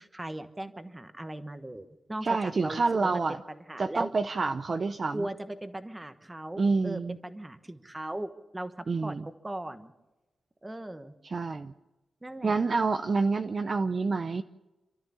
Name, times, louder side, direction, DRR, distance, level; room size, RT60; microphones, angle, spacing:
voice 1, 0.0-4.1 5.1-9.2 9.4-9.9 10.6-11.2 12.2-12.6, right 1 dB, 10° right, 9 dB, 1.2 m, -38 dB
voice 2, 2.2-3.4 3.8-5.3 6.6-7.2 8.9-9.2 11.2-11.7 12.4-14.4, right 4 dB, 35° right, 9 dB, 0.6 m, -28 dB
28.5 x 13.0 x 7.0 m, 1.1 s
wide cardioid pair, 175°, 0 cm